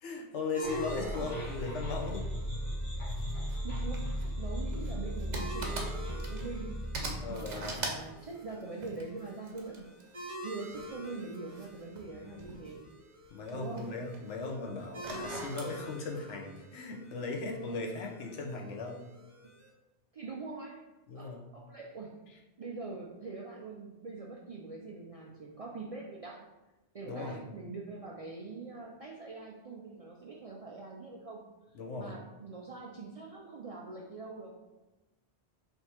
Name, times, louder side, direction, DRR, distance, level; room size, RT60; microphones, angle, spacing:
voice 1, 0.0-2.3 7.2-7.9 12.2-12.5 13.3-19.0 21.1-21.4 27.0-27.4 31.7-32.1, left 3 dB, 90° left, 1 dB, 1.0 m, -38 dB
sound 1, 0.5-19.7, right 1 dB, 30° right, 1.0 m, -47 dB
sound 2, 0.6-7.8, equal, 65° left, 1.2 m, -37 dB
sound 3, 3.1-3.6 3.9-6.7 6.9-10.1 10.7-12.8 13.1-14.3 14.8-15.7, right 3 dB, 90° right, 1.2 m, -42 dB
voice 2, 3.6-6.8 7.3-9.9 10.4-12.8 13.5-13.9 20.1-20.9 21.1-22.2 22.6-26.5 26.9-31.5 32.0-34.6, right 3 dB, 55° right, -2 dB, 0.4 m, -43 dB
3.4 x 2.8 x 4.3 m, 1.0 s
omnidirectional pair, 1.2 m